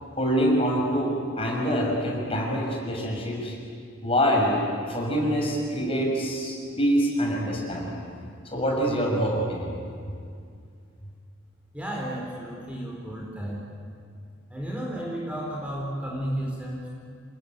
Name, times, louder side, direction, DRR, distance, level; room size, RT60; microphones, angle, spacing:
voice 1, 0.2-3.5 4.0-7.9 8.4-9.7, equal, 30° left, -1 dB, 6.0 m, -25 dB
voice 2, 11.7-13.6 14.5-16.9, right 1 dB, 5° right, -3 dB, 4.4 m, -33 dB
28.5 x 22.0 x 9.3 m, 2.2 s
head